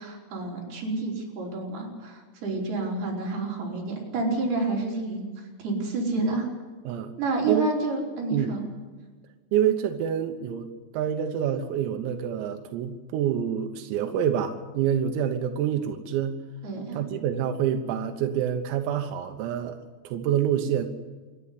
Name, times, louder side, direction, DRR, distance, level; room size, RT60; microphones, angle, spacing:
voice 1, 0.0-5.2 5.6-6.5 7.2-8.6 16.6-17.0, right 3 dB, 50° right, -2 dB, 6.7 m, -29 dB
voice 2, 9.5-10.7 10.9-16.4 16.9-19.8 20.1-20.9, right 9 dB, 90° right, 5 dB, 3.9 m, -27 dB
27.0 x 11.5 x 9.8 m, 1.4 s
omnidirectional pair, 6.0 m